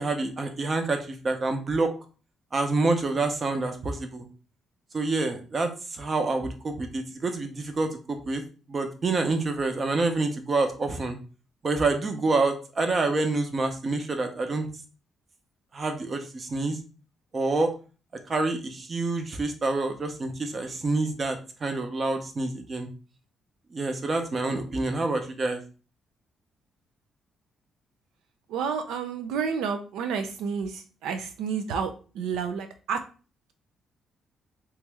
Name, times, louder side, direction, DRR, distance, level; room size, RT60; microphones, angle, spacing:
voice 1, 0.0-1.9 2.5-4.3 4.9-8.4 8.7-11.2 11.6-14.7 15.7-16.8 17.3-17.7 18.3-22.9 23.7-25.6, right 3 dB, 40° right, 6 dB, 0.8 m, -27 dB
voice 2, 28.5-33.0, right 6 dB, 90° right, 7 dB, 0.4 m, -30 dB
3.1 x 2.8 x 3.5 m, 0.36 s
cardioid pair, 90°, 0 cm